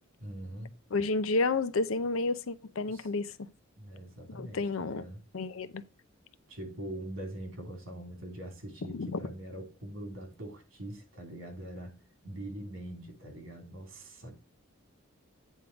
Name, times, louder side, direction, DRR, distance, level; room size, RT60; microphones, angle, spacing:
voice 1, 0.2-0.7 2.9-3.1 3.7-5.2 6.5-12.0 12.2-14.4, right 1 dB, 75° right, 3.2 m, -43 dB
voice 2, 0.9-3.3 4.3-5.0 5.3-5.8 8.9-9.2, left 3 dB, 80° left, 0.6 m, -30 dB
9.2 x 3.7 x 5.9 m
head